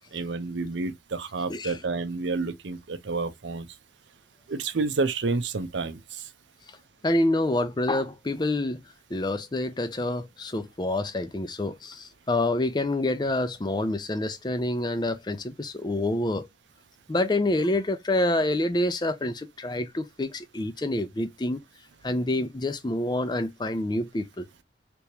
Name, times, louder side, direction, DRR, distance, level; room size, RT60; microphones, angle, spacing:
voice 1, 0.1-3.7 4.5-6.0, right 3 dB, 85° right, 0.6 m, -29 dB
voice 2, 7.0-8.8 9.1-16.5 17.1-21.6 22.0-24.5, left 1 dB, 25° left, 0.5 m, -27 dB
3.4 x 3.0 x 2.8 m
head